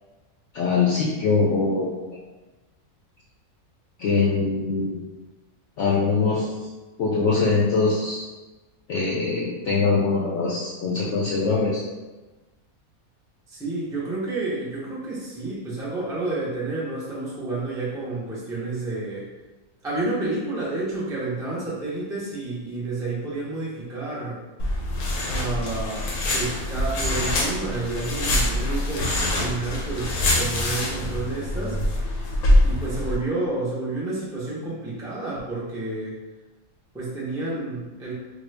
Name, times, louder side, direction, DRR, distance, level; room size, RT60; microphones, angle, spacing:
voice 1, 0.5-2.0 4.0-5.0 5.8-6.5 7.0-8.3 8.9-11.8, left 4 dB, 65° left, -5 dB, 0.8 m, -22 dB
voice 2, 13.5-19.3 19.8-24.4 25.3-31.8 32.6-36.2 36.9-38.1, right 2 dB, 5° right, -7 dB, 0.3 m, -30 dB
sound 1, 24.6-33.1, left 1 dB, 80° left, 1.1 m, -24 dB
3.2 x 2.2 x 3.2 m, 1.2 s
omnidirectional pair, 1.5 m